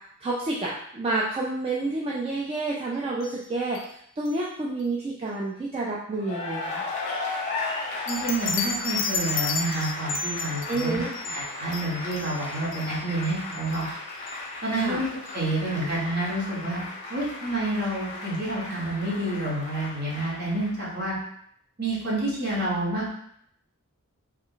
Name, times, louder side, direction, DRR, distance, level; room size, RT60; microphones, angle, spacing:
voice 1, 0.2-3.8 4.2-6.8 10.7-11.2 14.8-15.0, right 2 dB, 25° right, -4 dB, 0.3 m, -29 dB
sound 1, 3.2-3.4 3.7-3.9 4.2-4.3 8.1-13.9 14.3-14.4 14.8-14.9 15.3-15.4, left 4 dB, 60° left, 0.4 m, -33 dB
Cheering / Applause, 6.1-21.1, left 3 dB, 30° left, 0.8 m, -36 dB
voice 2, 8.1-11.0 11.3-13.8 14.6-15.1 15.3-21.1 21.8-23.1, right 1 dB, 45° right, -6 dB, 1.2 m, -28 dB
3.2 x 2.0 x 3.8 m, 0.69 s
head